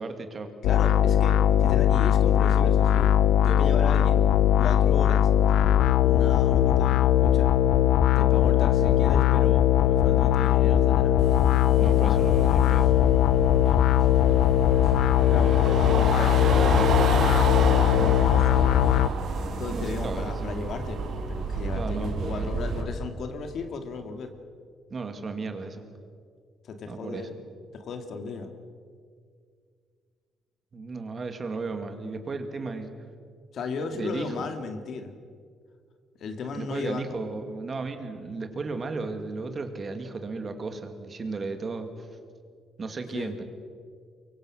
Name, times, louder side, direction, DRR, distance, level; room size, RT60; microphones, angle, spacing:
voice 1, 0.0-0.5 11.8-12.9 19.7-20.7 21.7-22.5 24.9-25.8 26.9-27.3 30.7-32.9 33.9-34.5 36.5-42.1 42.8-43.4, right 3 dB, 35° right, 7 dB, 2.3 m, -35 dB
sound 1, 0.6-19.1, left 11 dB, 85° left, 0.6 m, -20 dB
voice 2, 0.6-3.1 3.4-4.3 4.6-5.7 6.0-7.5 8.2-11.2 11.7-12.3 15.3-18.5 19.6-24.3 26.6-27.3 27.7-28.5 33.5-35.1 36.2-37.0 43.1-43.3, left 4 dB, 60° left, 7 dB, 2.3 m, -35 dB
sound 2, 11.2-22.8, right 4 dB, 65° right, 3.2 m, -30 dB
24.0 x 23.5 x 6.4 m, 2.1 s
cardioid pair, 120°, 0 cm